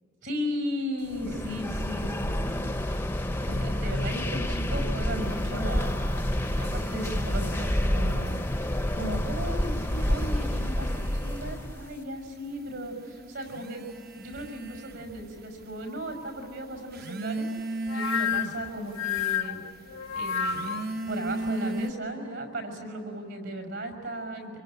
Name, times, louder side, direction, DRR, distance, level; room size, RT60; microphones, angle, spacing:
voice 1, 0.2-2.7 3.5-8.4 8.9-13.9 14.1-19.6 20.1-24.6, equal, 65° right, 5 dB, 5.9 m, -36 dB
sound 1, 1.1-11.9, left 1 dB, 10° left, 0.7 m, -29 dB
sound 2, 5.2-8.3 8.6-9.3 9.8-21.9, right 1 dB, 45° right, 1.0 m, -38 dB
sound 3, 17.9-21.0, left 7 dB, 85° left, 1.0 m, -30 dB
25.5 x 24.5 x 9.0 m, 2.7 s
head